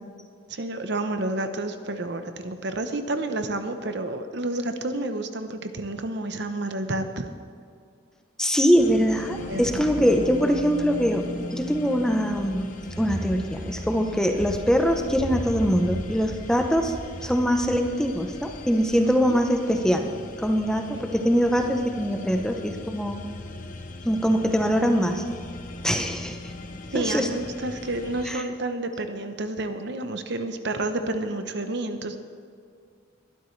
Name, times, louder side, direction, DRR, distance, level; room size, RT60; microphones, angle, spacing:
voice 1, 0.5-7.3 9.5-9.9 19.1-19.4 20.9-21.0 26.9-32.2, right 2 dB, 60° right, 8 dB, 0.9 m, -30 dB
voice 2, 8.4-11.3 11.5-12.7 13.0-16.9 17.2-20.1 20.4-23.2 24.0-25.2 25.8-26.5 26.9-27.3 28.3-28.4, equal, 5° left, 4 dB, 0.8 m, -23 dB
sound 1, 8.8-28.3, left 2 dB, 40° left, 0.9 m, -40 dB
sound 2, 12.8-19.0, equal, 70° left, 2.1 m, -36 dB
21.5 x 12.0 x 3.3 m, 2.3 s
head